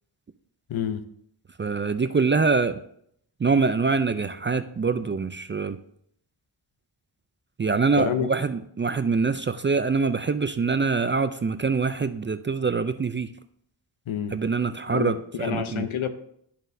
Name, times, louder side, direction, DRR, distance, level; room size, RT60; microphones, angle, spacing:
voice 1, 0.7-1.0 8.0-8.3 14.1-14.3 14.9-16.1, left 9 dB, 75° left, 10 dB, 0.7 m, -28 dB
voice 2, 1.6-2.8 3.4-5.8 7.6-13.3 14.3-15.9, right 4 dB, 25° right, 11 dB, 0.3 m, -24 dB
12.5 x 4.3 x 2.6 m, 0.70 s
cardioid pair, 40°, 48 cm